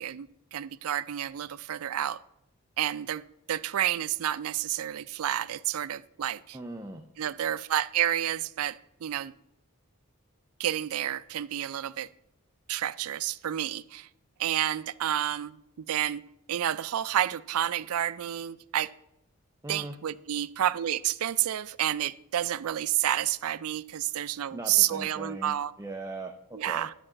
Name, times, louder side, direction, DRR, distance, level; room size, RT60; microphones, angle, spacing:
voice 1, 0.0-2.2 2.8-3.2 3.5-6.6 7.2-9.3 10.6-12.1 12.7-14.1 14.4-15.6 15.9-16.2 16.5-18.9 19.7-25.7 26.5-26.9, right 11 dB, 80° right, 0.4 m, -30 dB
voice 2, 6.5-7.0 19.6-20.0 24.1-26.9, right 2 dB, 15° right, 0.5 m, -40 dB
11.0 x 4.8 x 7.6 m
head